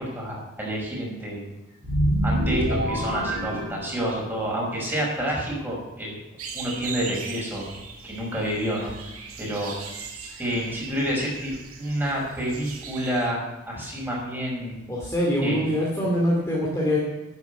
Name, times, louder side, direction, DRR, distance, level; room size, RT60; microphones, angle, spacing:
voice 1, 0.0-1.4 2.2-6.2 6.5-7.7 8.0-8.9 9.4-9.8 10.4-11.5 11.8-14.8 15.4-15.7, equal, 10° right, -3 dB, 5.5 m, -29 dB
sound 1, 1.8-4.4, right 1 dB, 50° right, 3.8 m, -26 dB
German Forest, 6.4-13.3, right 5 dB, 70° right, 2.4 m, -39 dB
voice 2, 14.9-17.0, equal, 15° left, -4 dB, 2.5 m, -24 dB
11.5 x 9.2 x 8.2 m, 1.0 s
head